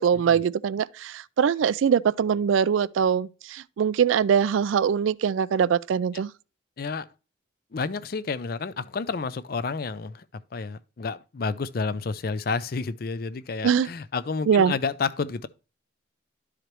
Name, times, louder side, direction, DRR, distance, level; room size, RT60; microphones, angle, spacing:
voice 1, 0.0-6.3 13.6-13.9 14.5-14.8, right 7 dB, 80° right, 0.3 m, -22 dB
voice 2, 6.8-7.1 7.7-10.2 10.5-15.5, left 4 dB, 50° left, 0.4 m, -30 dB
12.0 x 4.9 x 3.0 m
head